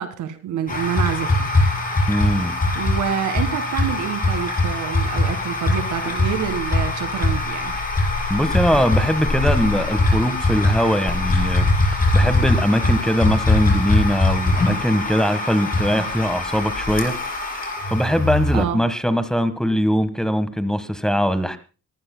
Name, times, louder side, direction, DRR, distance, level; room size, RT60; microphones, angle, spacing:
voice 1, 0.0-1.5 2.7-7.7 18.5-18.8, right 9 dB, 80° right, 11 dB, 1.8 m, -27 dB
sound 1, 0.7-18.6, left 2 dB, 30° left, 5.2 m, -22 dB
voice 2, 2.1-2.5 8.3-11.6 12.1-17.1 17.9-21.6, equal, ahead, 11 dB, 1.4 m, -21 dB
27.5 x 14.5 x 2.2 m, 0.33 s
cardioid pair, 90°, 30 cm